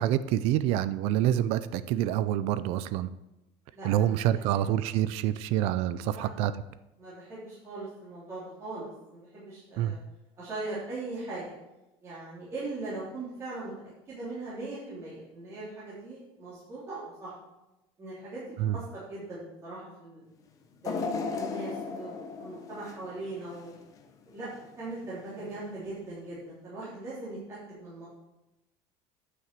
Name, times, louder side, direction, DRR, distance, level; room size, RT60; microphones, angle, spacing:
voice 1, 0.0-3.1 3.8-6.5 9.8-9.9 18.6-18.8, right 12 dB, 55° right, 14 dB, 0.4 m, -27 dB
voice 2, 3.7-4.7 6.1-6.2 7.0-10.0 10.4-11.5 12.0-17.3 18.0-20.2 20.8-23.7 24.2-24.5 24.8-28.1, right 2 dB, 20° right, -10 dB, 3.2 m, -40 dB
sound 1, 20.8-24.0 24.4-24.6 25.6-25.7, left 4 dB, 25° left, 0.9 m, -36 dB
9.5 x 5.8 x 7.5 m, 0.96 s
cardioid pair, 180°, 13 cm